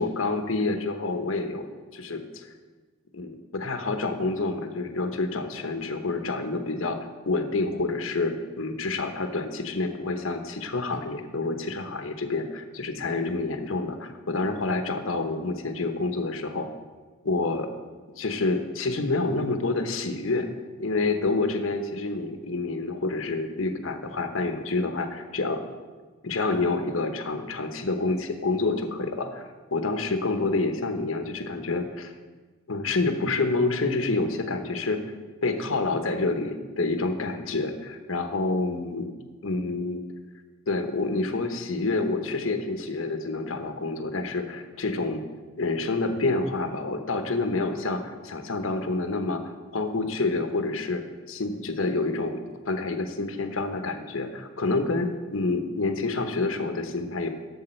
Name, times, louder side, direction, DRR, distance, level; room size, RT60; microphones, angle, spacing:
voice 1, 0.0-1.6 1.9-2.5 3.1-7.0 7.3-16.7 17.2-17.7 18.2-20.5 20.8-25.6 26.2-32.1 32.7-35.0 35.4-39.1 39.4-40.0 40.7-45.2 45.6-49.4 49.7-52.4 52.7-57.3, left 3 dB, 85° left, 6 dB, 1.0 m, -28 dB
12.0 x 7.3 x 4.4 m, 1.4 s
head